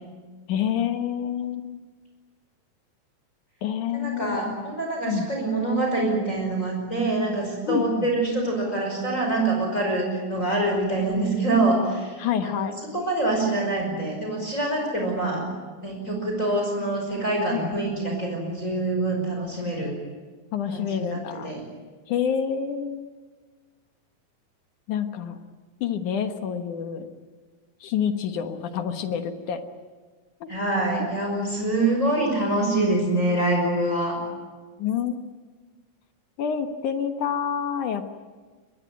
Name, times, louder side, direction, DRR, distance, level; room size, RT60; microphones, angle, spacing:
voice 1, 0.5-1.8 3.6-4.6 5.0-5.3 7.7-8.1 12.2-12.8 17.5-17.6 20.5-21.5 22.1-23.1 24.9-25.4 25.8-27.1 27.8-29.6 30.4-30.5 34.8-35.2 36.4-38.1, left 8 dB, 65° left, 7 dB, 2.6 m, -27 dB
voice 2, 3.9-12.7 12.9-20.0 20.7-21.6 30.5-34.2, right 2 dB, 20° left, 1 dB, 5.6 m, -25 dB
24.0 x 20.5 x 9.3 m, 1.4 s
omnidirectional pair, 4.0 m